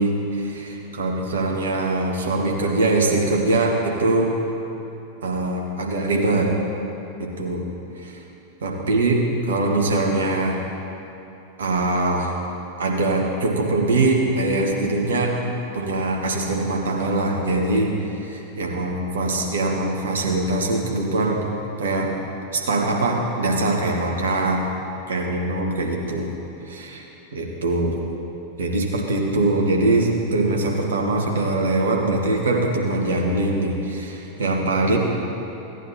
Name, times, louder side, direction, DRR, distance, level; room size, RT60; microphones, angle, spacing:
voice 1, 0.0-4.3 5.2-6.5 7.2-7.6 8.0-8.2 8.6-9.2 9.4-10.6 11.6-12.3 12.8-15.4 15.7-21.4 21.8-22.1 22.5-24.7 25.1-26.3 26.6-27.0 27.3-27.9 28.6-35.0, right 2 dB, 65° right, 0 dB, 1.5 m, -22 dB
16.5 x 10.0 x 2.9 m, 2.9 s
figure-of-eight pair, 90°, 0 cm